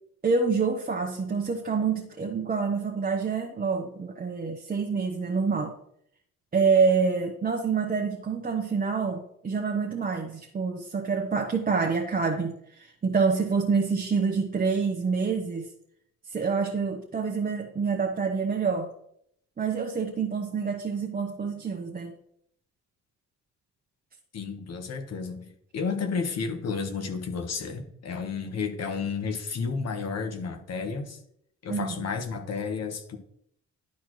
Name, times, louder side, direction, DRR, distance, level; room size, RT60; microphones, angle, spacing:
voice 1, 0.2-5.8 6.5-15.7 16.3-18.9 19.6-22.2 31.7-32.1, right 5 dB, 30° right, 1 dB, 0.9 m, -27 dB
voice 2, 24.3-31.2 31.6-33.2, left 5 dB, 55° left, 5 dB, 1.3 m, -32 dB
12.0 x 4.3 x 3.1 m, 0.71 s
cardioid pair, 90°, 30 cm